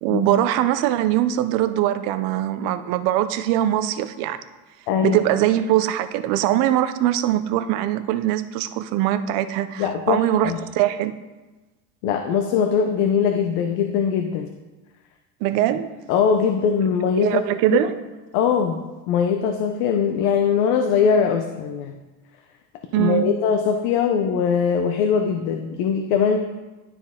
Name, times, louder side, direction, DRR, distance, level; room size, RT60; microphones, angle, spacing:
voice 1, 0.0-4.4 5.0-11.1 15.4-15.9 17.2-18.0 22.9-23.3, right 12 dB, 80° right, 0.6 m, -22 dB
voice 2, 4.9-5.2 9.8-10.6 12.0-14.5 16.1-17.4 17.7-17.8 18.3-18.8 19.1-21.9 23.0-26.4, left 6 dB, 90° left, 0.7 m, -21 dB
11.5 x 4.3 x 3.6 m
cardioid pair, 155°, 32 cm